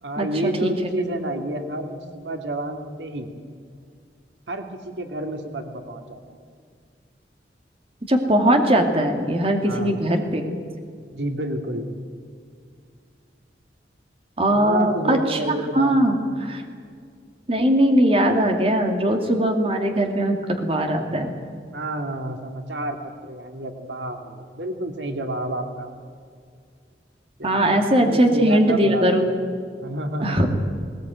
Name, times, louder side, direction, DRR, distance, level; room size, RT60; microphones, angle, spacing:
voice 1, 0.0-3.3 4.5-6.4 9.6-10.0 11.1-11.9 14.5-16.1 21.7-26.0 27.4-29.1 29.8-30.4, right 1 dB, 90° right, 5 dB, 2.2 m, -30 dB
voice 2, 8.1-10.4 14.4-15.4 15.7-16.6 17.5-21.3 27.4-29.2 30.2-30.5, right 1 dB, 35° right, 4 dB, 2.4 m, -20 dB
20.0 x 19.5 x 9.3 m, 2.2 s
head